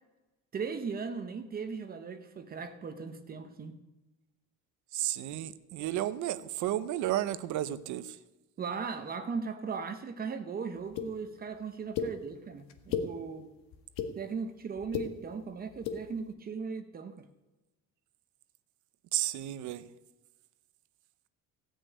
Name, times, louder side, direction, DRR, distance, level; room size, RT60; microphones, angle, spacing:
voice 1, 0.5-3.8 8.6-13.5 14.1-17.2, right 5 dB, 25° right, 8 dB, 0.8 m, -38 dB
voice 2, 4.9-8.0 19.1-19.8, right 13 dB, 55° right, 14 dB, 0.8 m, -32 dB
sound 1, 11.0-11.1 11.9-12.1 12.7-13.1 13.7-14.1 14.8-15.1 15.7-16.0, left 8 dB, 85° left, 1.7 m, -32 dB
16.5 x 6.4 x 9.2 m, 1.1 s
cardioid pair, 180°, 36 cm